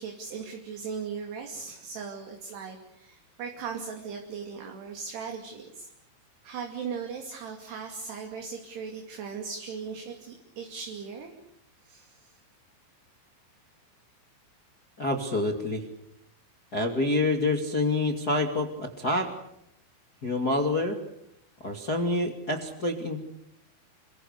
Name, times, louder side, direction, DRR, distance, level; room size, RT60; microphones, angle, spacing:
voice 1, 0.0-5.9 6.4-11.3 11.8-12.3, right 6 dB, 60° right, 3 dB, 4.5 m, -38 dB
voice 2, 15.0-15.8 16.7-19.3 20.2-21.0 21.6-23.2, left 2 dB, 30° left, 3 dB, 1.9 m, -27 dB
29.0 x 24.5 x 6.7 m, 0.76 s
omnidirectional pair, 5.6 m